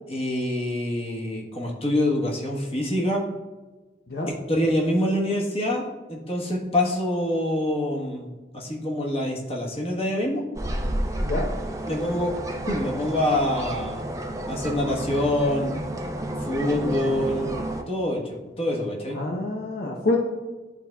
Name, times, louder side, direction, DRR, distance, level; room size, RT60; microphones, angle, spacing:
voice 1, 0.1-3.2 4.5-10.4 11.9-12.3 12.7-14.1 14.5-15.7 16.4-17.5 17.9-19.2, left 1 dB, 35° left, -2 dB, 1.2 m, -26 dB
sound 1, 10.6-17.8, right 1 dB, 20° right, 0.5 m, -30 dB
voice 2, 19.1-20.2, left 2 dB, 55° left, -1 dB, 0.7 m, -26 dB
11.0 x 4.2 x 2.3 m, 1.2 s
head